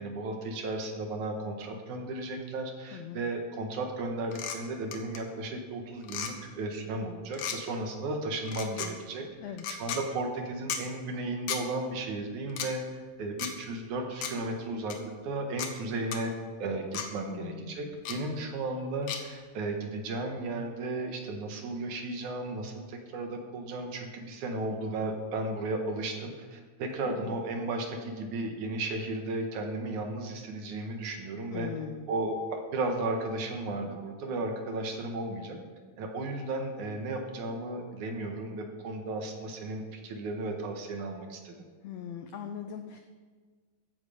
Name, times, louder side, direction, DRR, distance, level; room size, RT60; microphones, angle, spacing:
voice 1, 0.0-15.0 15.2-16.3 16.6-31.7 32.1-35.6 36.0-41.5, right 2 dB, 65° right, 3 dB, 2.6 m, -34 dB
voice 2, 2.9-3.2 9.4-9.7 17.3-17.8 27.0-27.3 31.5-32.1 41.8-43.0, left 8 dB, 90° left, 6 dB, 1.5 m, -40 dB
sound 1, 4.3-4.6 4.9-5.2 6.0-6.3 7.3-7.6 8.4-8.9 9.6-10.0 10.7-10.8 11.5-11.6 12.5-12.7 13.4-13.5 14.2-14.3 14.9-15.0 15.6-15.7 16.1-16.2 16.9-17.1 18.0-18.2 19.1-19.2, left 7 dB, 65° left, 1.8 m, -34 dB
14.5 x 9.8 x 5.0 m, 1.5 s
omnidirectional pair, 4.0 m